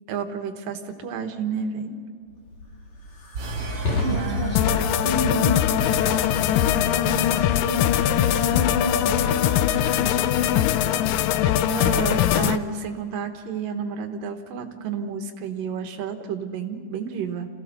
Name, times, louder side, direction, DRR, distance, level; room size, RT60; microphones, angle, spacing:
voice 1, 0.1-2.0 4.1-4.6 11.6-17.5, right 6 dB, 80° right, 6 dB, 3.0 m, -31 dB
Fire, 2.3-11.3, left 2 dB, 50° left, 4.0 m, -32 dB
sound 1, 3.3-5.6, right 3 dB, 45° right, 3.0 m, -34 dB
voice 2, 4.0-11.1, equal, 20° right, -2 dB, 2.2 m, -32 dB
sound 2, 4.5-12.6, left 12 dB, 80° left, 2.3 m, -21 dB
27.5 x 16.0 x 6.7 m, 2.2 s
omnidirectional pair, 3.9 m